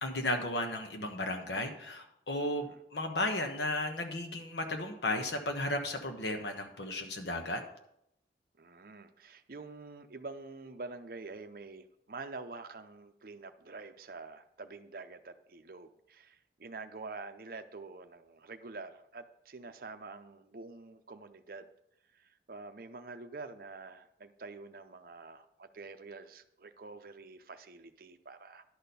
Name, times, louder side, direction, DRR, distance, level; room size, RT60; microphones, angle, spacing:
voice 1, 0.0-7.6, left 1 dB, 70° left, 5 dB, 1.2 m, -34 dB
voice 2, 8.6-21.7 22.1-28.6, right 3 dB, 50° right, 9 dB, 0.6 m, -47 dB
11.0 x 4.3 x 6.7 m, 0.78 s
head